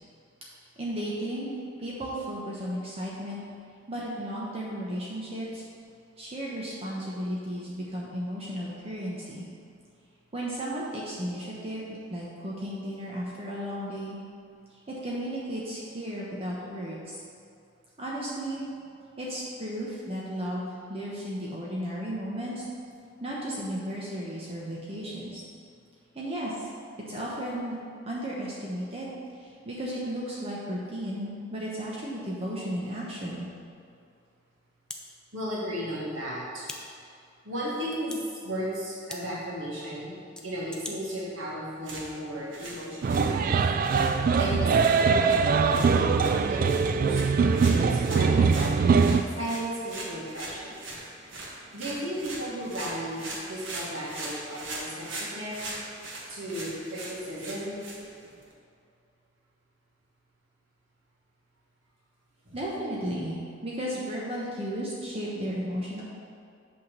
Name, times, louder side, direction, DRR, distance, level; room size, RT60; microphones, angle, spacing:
voice 1, 0.8-3.4 3.9-5.6 6.2-9.5 10.3-14.2 14.7-17.2 18.0-18.6 19.2-22.6 23.2-25.4 26.1-26.7 27.1-27.8 28.1-33.5 62.5-66.0, equal, 30° right, -5 dB, 1.0 m, -34 dB
sound 1, 34.9-35.0 36.6-36.8 37.9-38.2 39.1-39.2 40.4-41.0, left 1 dB, 5° left, 0.6 m, -39 dB
voice 2, 35.3-36.7 37.1-37.2 37.4-48.5 49.3-50.9 51.7-55.6 56.3-57.8 62.5-62.6, equal, 85° right, -7 dB, 2.1 m, -35 dB
sound 2, 41.7-58.5, right 2 dB, 70° right, 1.5 m, -41 dB
sound 3, 43.0-49.2, right 5 dB, 45° right, 0.3 m, -22 dB
8.4 x 3.8 x 6.6 m, 2.4 s
head